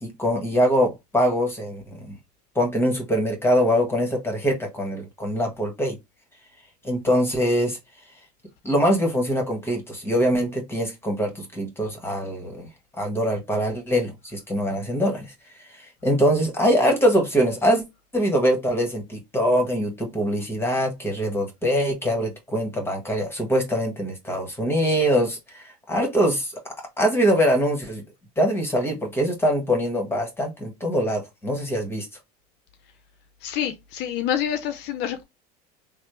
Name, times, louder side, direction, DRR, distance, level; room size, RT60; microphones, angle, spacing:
voice 1, 0.0-2.1 2.5-6.0 6.8-7.8 8.6-12.7 13.0-15.3 15.6-17.8 18.1-26.5 27.0-28.0 28.4-32.1, equal, 10° left, 1.3 m, -23 dB
voice 2, 33.4-35.2, left 10 dB, 60° left, 0.6 m, -27 dB
3.2 x 2.0 x 3.0 m
supercardioid pair, 95°, 20 cm